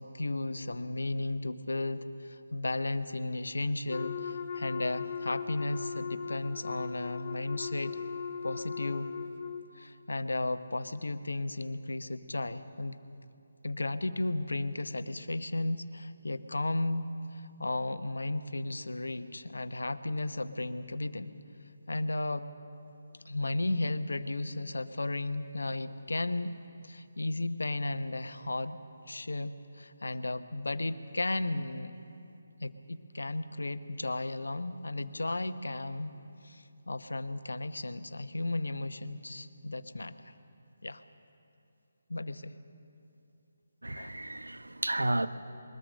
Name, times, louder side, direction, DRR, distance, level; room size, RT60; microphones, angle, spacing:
voice 1, 0.0-8.0 8.4-9.1 9.8-13.0 13.6-21.3 21.9-22.5 23.2-26.6 26.8-32.0 32.6-36.2 36.4-40.3 40.8-41.0 42.1-42.5 44.0-44.1 45.2-45.3, left 2 dB, 70° left, 0.9 m, -34 dB
Wind instrument woodwind instrument, 3.9-9.7, left 6 dB, 35° left, 1.0 m, -38 dB
voice 2, 43.8-45.3, right 1 dB, 75° right, 0.9 m, -32 dB
21.5 x 19.5 x 6.6 m
figure-of-eight pair, 150°, 0 cm